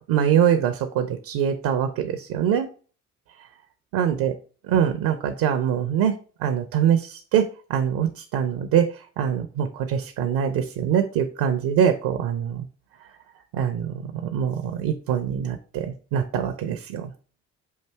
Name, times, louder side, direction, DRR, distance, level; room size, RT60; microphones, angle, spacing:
voice 1, 0.0-2.7 3.9-4.3 4.7-12.7 13.5-17.1, right 8 dB, 65° right, 6 dB, 0.7 m, -24 dB
5.7 x 2.6 x 3.4 m, 0.39 s
hypercardioid pair, 55°, 38 cm